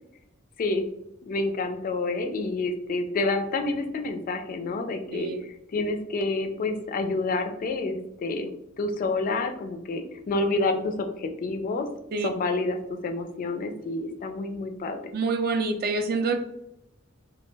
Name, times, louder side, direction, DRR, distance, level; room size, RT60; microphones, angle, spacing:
voice 1, 1.2-8.5 8.8-11.8 12.2-12.8 13.0-15.0, left 3 dB, 40° left, 6 dB, 0.3 m, -28 dB
voice 2, 15.1-16.4, right 3 dB, 50° right, 6 dB, 0.3 m, -26 dB
2.2 x 2.1 x 3.2 m, 0.82 s
head